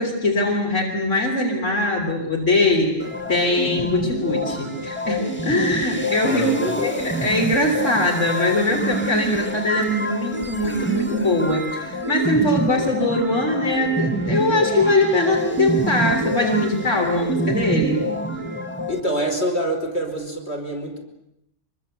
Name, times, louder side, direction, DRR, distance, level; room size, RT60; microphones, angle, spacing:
voice 1, 0.0-18.0 18.3-18.4, left 1 dB, 75° left, 0 dB, 4.1 m, -22 dB
sound 1, 3.0-19.0, right 1 dB, 10° left, 1.8 m, -27 dB
voice 2, 6.2-7.0 18.9-21.0, right 1 dB, 55° left, 1 dB, 5.0 m, -26 dB
25.0 x 24.0 x 8.1 m, 0.82 s
omnidirectional pair, 1.3 m